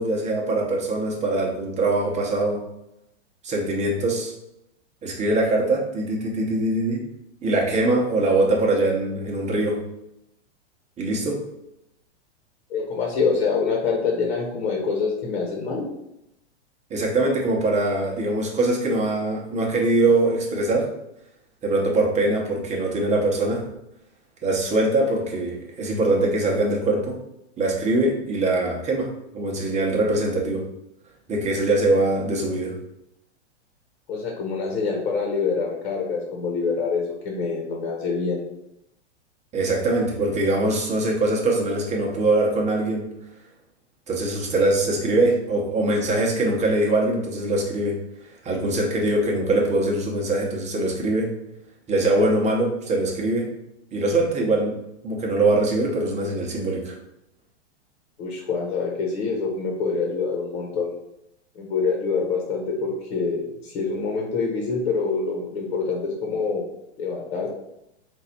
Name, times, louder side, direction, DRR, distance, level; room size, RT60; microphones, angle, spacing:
voice 1, 0.0-2.6 3.4-4.3 5.0-7.0 7.4-9.8 11.0-11.4 16.9-20.9 21.6-23.6 24.4-27.2 27.6-30.6 31.3-32.7 39.5-43.1 44.1-48.0 48.4-51.3 51.9-53.5 53.9-54.8 55.0-56.9, right 2 dB, 20° right, -1 dB, 1.0 m, -22 dB
voice 2, 12.7-15.9 34.1-38.4 58.2-60.9 61.5-66.6 67.0-67.5, left 4 dB, 55° left, 0 dB, 1.2 m, -26 dB
3.9 x 2.7 x 4.3 m, 0.85 s
hypercardioid pair, 135°, 35 cm